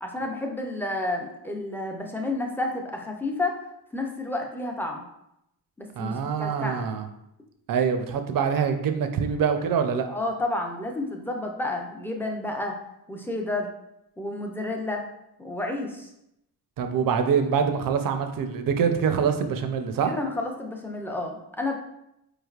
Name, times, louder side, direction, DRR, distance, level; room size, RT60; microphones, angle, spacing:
voice 1, 0.0-3.6 3.9-5.0 5.8-6.1 6.4-6.9 10.1-12.7 13.1-13.7 14.2-15.0 15.4-16.1 20.1-21.7, left 2 dB, 5° left, 2 dB, 0.3 m, -30 dB
voice 2, 6.0-7.1 7.7-10.0 16.8-20.1, right 6 dB, 55° right, 7 dB, 0.5 m, -25 dB
4.7 x 3.2 x 2.3 m, 0.82 s
wide cardioid pair, 165°, 40 cm